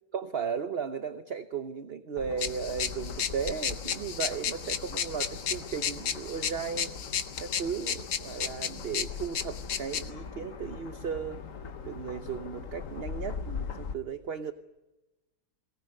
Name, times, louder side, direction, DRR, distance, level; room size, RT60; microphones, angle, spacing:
voice 1, 0.1-7.0 7.4-11.4 11.8-14.5, right 6 dB, 45° right, 9 dB, 0.9 m, -35 dB
sound 1, 2.2-13.9, left 5 dB, 50° left, 1.5 m, -41 dB
sound 2, 2.4-10.1, left 8 dB, 80° left, 1.8 m, -34 dB
23.5 x 19.0 x 9.3 m, 1.1 s
omnidirectional pair, 1.9 m